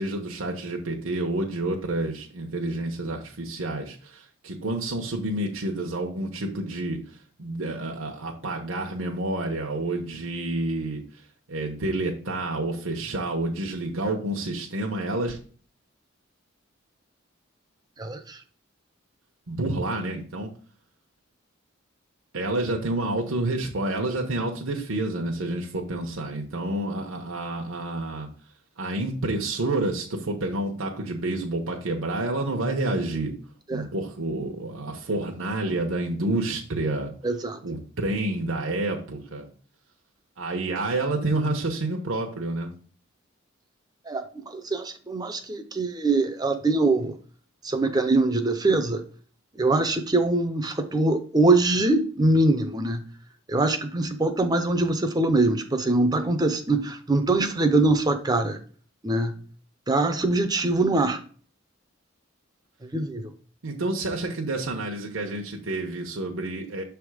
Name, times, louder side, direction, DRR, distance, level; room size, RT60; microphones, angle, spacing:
voice 1, 0.0-7.0 7.4-11.0 11.5-15.4 19.5-20.5 22.3-28.3 28.8-33.3 33.7-37.1 37.6-39.5 40.4-42.7 63.6-66.8, right 2 dB, 80° right, 1 dB, 0.9 m, -29 dB
voice 2, 18.0-18.4 33.7-33.8 37.2-37.6 44.1-44.3 44.5-47.2 47.6-49.0 49.6-53.0 53.5-58.6 59.0-59.4 59.9-61.2 62.9-63.3, right 2 dB, 20° right, 8 dB, 0.5 m, -23 dB
6.8 x 3.4 x 4.8 m, 0.43 s
head